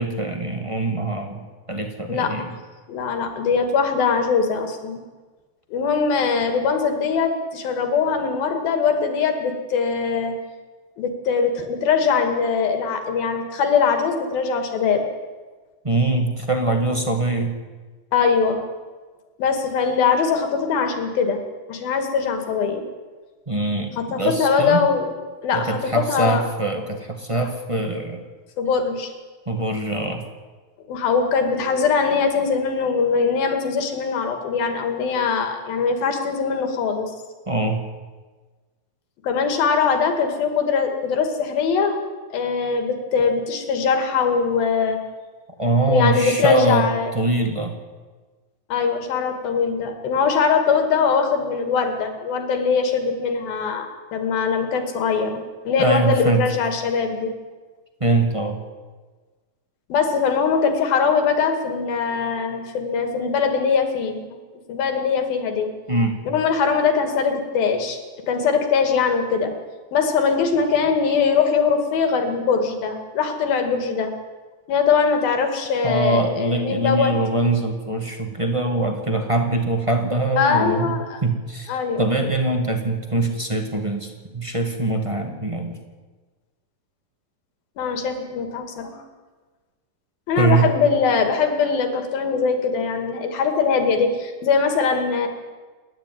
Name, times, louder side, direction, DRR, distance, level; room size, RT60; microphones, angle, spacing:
voice 1, 0.0-2.5 15.8-17.5 23.5-24.9 25.5-28.2 29.4-30.3 37.5-37.8 45.6-47.7 55.8-56.4 58.0-58.6 65.9-66.2 75.8-80.9 81.2-85.8 90.4-90.7, right 2 dB, 20° right, 4 dB, 0.8 m, -23 dB
voice 2, 2.9-5.0 5.7-10.4 11.0-15.0 18.1-18.6 19.4-21.4 21.7-22.9 24.0-25.1 25.4-26.4 28.6-29.1 30.9-37.1 39.2-42.0 42.3-45.0 45.9-47.1 48.7-57.3 59.9-64.2 64.7-65.7 66.3-68.0 68.3-69.5 69.9-74.1 74.7-77.1 80.4-81.2 81.7-82.1 87.8-89.0 90.3-95.3, left 5 dB, 80° left, 5 dB, 4.2 m, -21 dB
28.5 x 11.5 x 9.4 m, 1.4 s
omnidirectional pair, 4.2 m